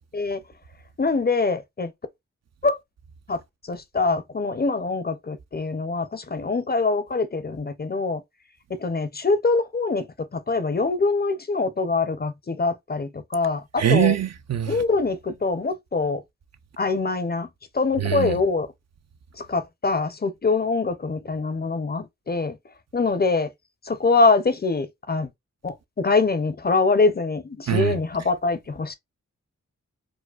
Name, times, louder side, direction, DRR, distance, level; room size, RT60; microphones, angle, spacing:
voice 1, 1.0-1.9 2.6-2.8 3.3-3.4 3.7-8.2 8.7-10.1 10.3-14.2 14.7-16.2 16.8-17.5 17.7-18.7 19.4-22.6 22.9-23.5 23.9-25.3 25.6-28.9, left 3 dB, 30° left, 0.5 m, -24 dB
voice 2, 13.8-14.8 18.0-18.4 27.7-27.9, right 10 dB, 55° right, 0.5 m, -22 dB
4.8 x 2.1 x 2.3 m
cardioid pair, 50°, 31 cm